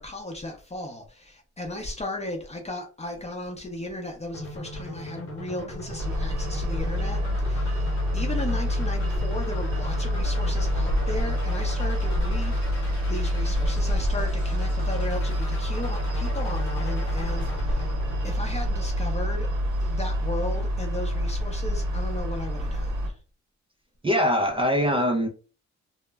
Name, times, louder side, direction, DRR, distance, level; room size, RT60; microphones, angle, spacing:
voice 1, 0.0-12.6 13.1-17.9 18.2-19.5 19.8-23.1, left 1 dB, 20° left, 0.6 m, -35 dB
sound 1, 4.3-19.3, left 1 dB, 45° left, 1.0 m, -40 dB
sound 2, 6.0-23.1, equal, 75° right, 0.7 m, -26 dB
voice 2, 24.0-25.3, equal, 20° right, 0.4 m, -22 dB
2.1 x 2.0 x 3.3 m
cardioid pair, 90°, 30 cm